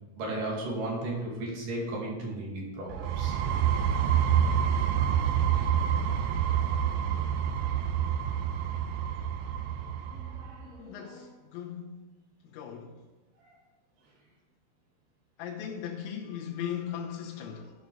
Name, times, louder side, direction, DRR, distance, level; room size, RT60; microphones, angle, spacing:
voice 1, 0.2-3.4 10.1-11.2, right 1 dB, 50° right, -3 dB, 3.6 m, -35 dB
sound 1, 2.9-10.5, right 9 dB, 90° right, 2.5 m, -27 dB
voice 2, 10.8-12.1 12.5-12.9 15.4-17.7, left 9 dB, 90° left, -2 dB, 3.7 m, -38 dB
13.0 x 6.7 x 4.9 m, 1.1 s
omnidirectional pair, 5.8 m